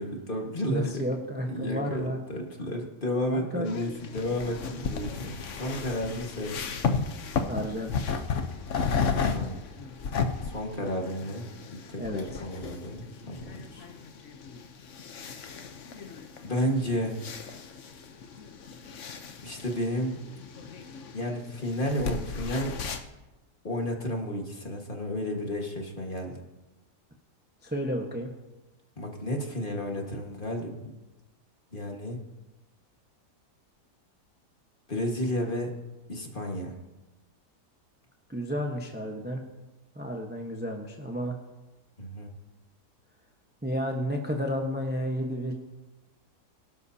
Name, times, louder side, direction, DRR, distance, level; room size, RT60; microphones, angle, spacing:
voice 1, 0.0-1.0 1.5-6.6 9.3-9.6 10.4-13.9 16.4-17.2 19.4-20.2 21.1-22.8 23.6-26.4 29.0-30.9 31.7-32.2 34.9-35.7 36.1-36.8 42.0-42.3, equal, 30° left, 1 dB, 1.8 m, -32 dB
voice 2, 0.7-2.2 3.2-3.7 7.5-7.9 12.0-12.2 27.6-28.3 38.3-39.4 39.9-41.4 43.6-45.5, equal, 10° right, 1 dB, 0.9 m, -31 dB
sound 1, 3.7-23.0, left 5 dB, 55° left, 1.1 m, -34 dB
23.0 x 12.0 x 2.8 m, 1.1 s
omnidirectional pair, 1.8 m